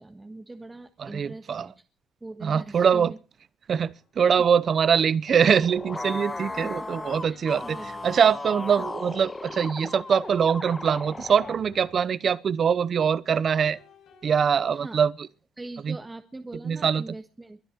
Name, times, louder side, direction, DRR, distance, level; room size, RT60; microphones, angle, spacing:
voice 1, 0.0-1.7 2.2-3.2 6.6-6.9 7.3-8.2 8.8-8.9 14.7-15.0 15.6-17.6, right 2 dB, 20° right, 1.5 m, -41 dB
voice 2, 1.0-1.7 2.4-3.1 3.7-7.8 8.0-13.8 14.2-15.1 15.8-15.9 16.6-17.0, right 7 dB, 55° right, 0.9 m, -23 dB
sound 1, 4.0-4.1 5.5-8.2 9.5-12.2 13.5-14.6, left 4 dB, 85° left, 5.0 m, -54 dB
sound 2, 5.3-11.6, left 2 dB, 20° left, 1.4 m, -36 dB
23.0 x 10.0 x 4.6 m
cardioid pair, 90°, 0 cm